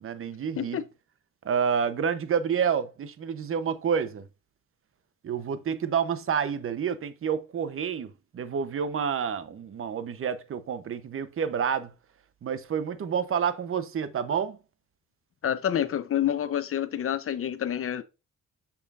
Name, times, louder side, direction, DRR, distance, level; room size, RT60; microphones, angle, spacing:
voice 1, 0.0-0.8 1.4-4.3 5.2-11.9 12.4-14.6, right 7 dB, 45° right, 0.8 m, -29 dB
voice 2, 15.4-18.0, left 10 dB, 45° left, 0.8 m, -28 dB
6.7 x 5.6 x 2.5 m
cardioid pair, 90°, 30 cm